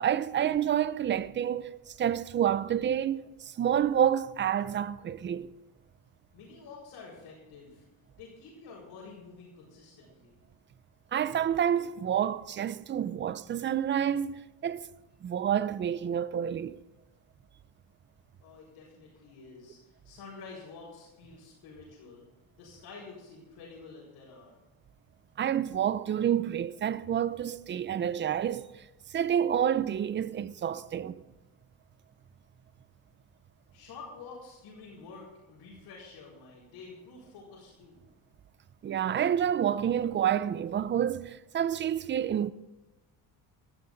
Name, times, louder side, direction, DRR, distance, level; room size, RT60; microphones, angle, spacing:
voice 1, 0.0-5.5 11.1-14.9 15.2-16.8 25.4-28.8 29.1-31.2 38.8-42.5, right 9 dB, 30° right, 0.5 m, -29 dB
voice 2, 6.3-7.8 8.2-10.4 18.4-22.2 22.6-24.6 33.7-38.0, left 4 dB, 75° left, 6.0 m, -49 dB
17.5 x 13.5 x 3.9 m
cardioid pair, 140°, 39 cm